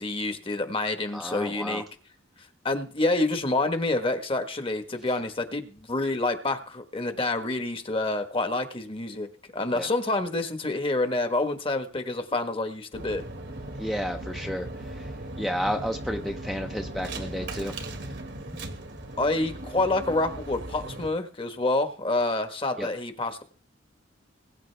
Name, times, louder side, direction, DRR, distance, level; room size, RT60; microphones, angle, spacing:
voice 1, 0.0-1.8 2.6-9.3 9.5-13.2 19.2-23.4, left 2 dB, 30° left, 1.4 m, -27 dB
voice 2, 1.1-1.8 9.7-9.9 13.8-14.7 14.9-15.1 15.4-17.7 22.8-22.9, equal, ahead, 0.8 m, -31 dB
sound 1, 12.9-21.1, right 1 dB, 65° right, 1.7 m, -38 dB
21.0 x 9.1 x 3.4 m
head